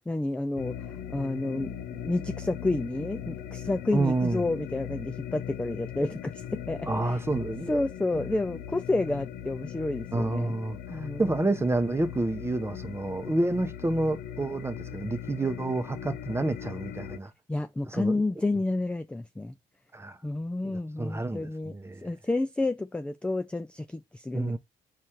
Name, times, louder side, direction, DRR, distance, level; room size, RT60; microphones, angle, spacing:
voice 1, 0.0-7.2 7.4-10.5 10.9-11.4 17.5-19.5 20.2-21.7 22.0-24.6, left 2 dB, 5° left, 0.3 m, -30 dB
sound 1, 0.6-17.2, left 10 dB, 65° left, 0.5 m, -39 dB
voice 2, 3.9-4.4 6.9-7.8 10.1-17.3 17.9-18.2 19.9-20.2 20.6-22.0 24.3-24.6, right 2 dB, 15° right, 0.7 m, -29 dB
4.2 x 2.4 x 4.7 m
supercardioid pair, 60°, 17 cm